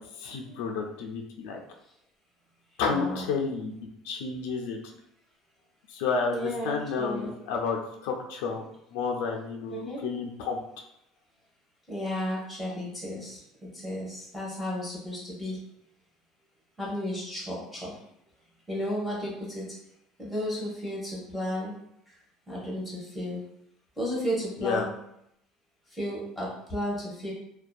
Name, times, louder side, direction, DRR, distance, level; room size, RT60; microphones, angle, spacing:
voice 1, 0.0-1.6 2.8-3.7 4.0-4.8 5.9-8.6 8.9-10.6 24.6-24.8, left 5 dB, 85° left, 1 dB, 0.4 m, -31 dB
voice 2, 2.9-3.3 6.3-7.3 9.7-10.0 11.9-15.6 16.8-17.9 18.7-19.7 20.2-21.7 22.1-22.2 22.5-23.4 24.0-24.9 25.9-27.3, equal, ahead, -6 dB, 0.8 m, -33 dB
2.6 x 2.2 x 2.3 m, 0.77 s
cardioid pair, 150°, 0 cm